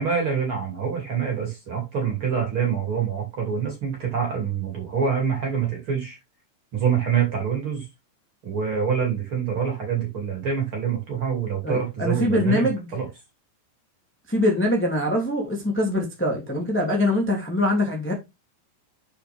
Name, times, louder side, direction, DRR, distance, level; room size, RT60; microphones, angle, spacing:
voice 1, 0.0-6.2 6.7-7.9 8.4-13.1, right 7 dB, 35° right, 2.8 m, -26 dB
voice 2, 11.6-12.9 14.3-18.1, left 1 dB, 5° left, 0.8 m, -23 dB
7.0 x 6.9 x 3.5 m
omnidirectional pair, 5.5 m